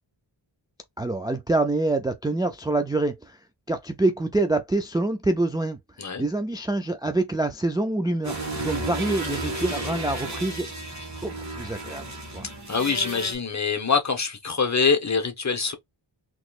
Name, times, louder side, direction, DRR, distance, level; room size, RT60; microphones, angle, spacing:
voice 1, 1.0-3.4 3.7-5.8 6.2-10.7 11.2-12.5, right 2 dB, 10° right, 0.4 m, -26 dB
sound 1, 8.2-13.4, right 2 dB, 35° right, 1.7 m, -33 dB
voice 2, 12.7-15.7, left 5 dB, 35° left, 1.0 m, -24 dB
4.0 x 3.1 x 2.4 m
wide cardioid pair, 95°, 47 cm